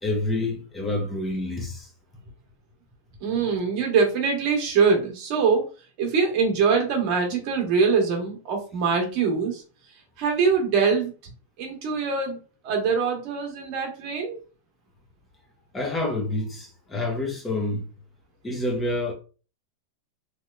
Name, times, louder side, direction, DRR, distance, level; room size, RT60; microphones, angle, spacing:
voice 1, 0.0-1.9 15.7-17.8 18.4-19.1, left 2 dB, 15° left, 1.1 m, -28 dB
voice 2, 3.2-5.7 6.0-9.6 10.2-11.1 11.6-12.4 12.6-14.4, right 5 dB, 50° right, 1.2 m, -23 dB
3.1 x 2.8 x 2.5 m
hypercardioid pair, 110°, 0 cm